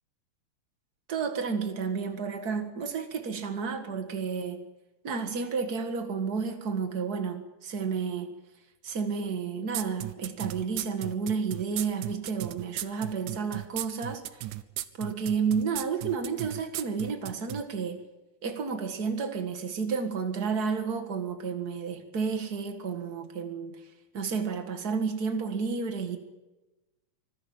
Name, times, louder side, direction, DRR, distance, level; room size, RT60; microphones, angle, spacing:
voice 1, 1.1-4.7 5.0-8.3 8.8-14.4 15.0-18.0 18.4-23.8 24.1-26.2, right 5 dB, 45° right, 6 dB, 1.3 m, -31 dB
sound 1, 9.7-17.6, right 15 dB, 75° right, 2.0 m, -35 dB
25.0 x 14.5 x 8.8 m, 1.1 s
omnidirectional pair, 4.4 m